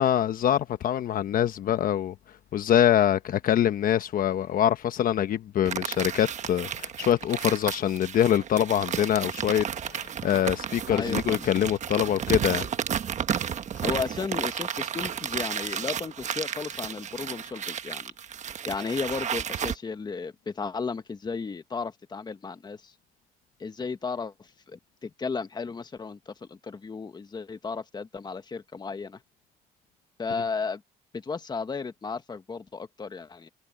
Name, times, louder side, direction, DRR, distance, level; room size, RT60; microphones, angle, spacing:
voice 1, 0.0-2.1 2.5-12.7, left 10 dB, 55° left, 1.1 m, -24 dB
sound 1, 5.7-19.8, right 8 dB, 45° right, 1.2 m, -32 dB
voice 2, 10.9-11.4 13.8-18.1 18.7-22.9 23.6-29.2 30.2-30.8 31.1-33.5, left 5 dB, 25° left, 1.5 m, -34 dB
cardioid pair, 110°, 17 cm